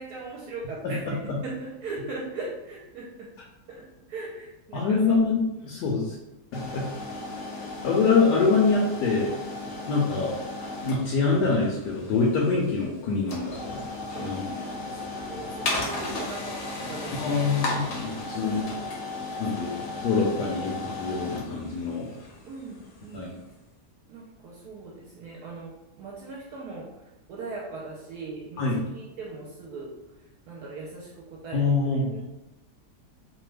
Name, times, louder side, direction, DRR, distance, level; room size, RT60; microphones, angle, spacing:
voice 1, 0.0-3.3 3.7-5.2 14.1-16.6 16.9-17.5 18.3-18.7 19.3-20.7 22.5-23.4 24.1-29.9 30.5-32.2, right 3 dB, 75° right, -3 dB, 1.1 m, -40 dB
voice 2, 4.7-6.2 6.5-6.8 7.8-9.3 9.8-10.3 10.8-13.8 14.2-14.4 17.2-18.6 19.4-22.1 23.1-23.3 28.6-28.9 31.5-32.2, left 4 dB, 80° left, -3 dB, 1.2 m, -25 dB
sound 1, 6.5-23.4, left 2 dB, 65° left, 0.9 m, -35 dB
3.0 x 2.1 x 3.2 m, 0.99 s
omnidirectional pair, 1.8 m